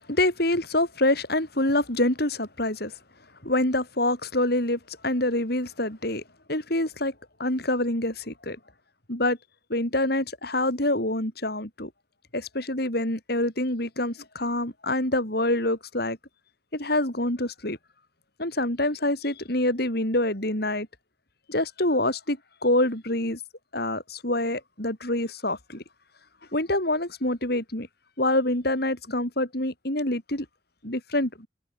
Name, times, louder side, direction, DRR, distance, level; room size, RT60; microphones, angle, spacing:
voice 1, 0.1-2.9 3.4-6.2 6.5-7.1 7.4-8.6 9.1-9.4 9.7-11.9 12.3-16.2 16.7-17.8 18.4-20.9 21.5-23.4 23.7-25.8 26.5-27.9 28.2-30.5 30.8-31.5, left 1 dB, 50° left, 4.5 m, -26 dB
head